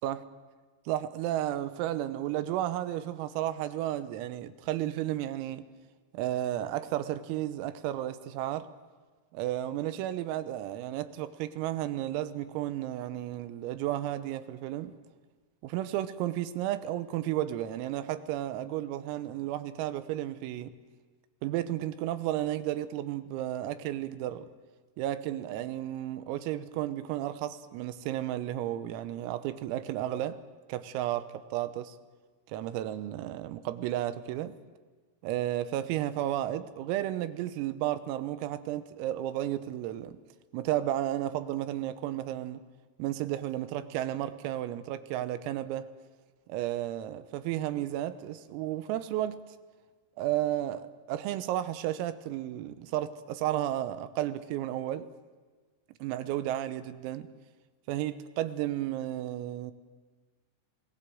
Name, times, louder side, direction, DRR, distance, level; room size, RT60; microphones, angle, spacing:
voice 1, 0.9-5.6 6.1-8.7 9.3-14.9 15.6-20.7 21.4-24.5 25.0-30.4 30.7-32.0 32.5-34.6 35.2-40.2 40.5-42.6 43.0-45.9 46.5-49.4 50.2-55.1 56.0-57.3 57.9-59.7, right 13 dB, 90° right, 12 dB, 3.7 m, -33 dB
27.5 x 19.0 x 7.7 m, 1.4 s
omnidirectional pair, 6.0 m